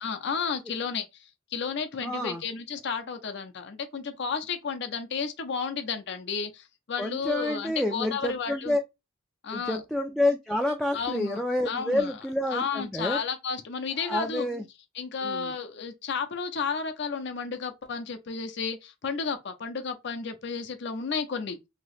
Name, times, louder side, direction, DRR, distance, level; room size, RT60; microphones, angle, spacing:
voice 1, 0.0-8.8 9.4-9.8 10.9-12.2 12.5-14.5 14.9-21.6, left 5 dB, 60° left, 0.6 m, -32 dB
voice 2, 2.0-2.4 7.0-8.8 9.5-13.2 14.0-14.6 15.2-15.5, left 1 dB, ahead, 0.3 m, -28 dB
2.8 x 2.7 x 3.1 m
head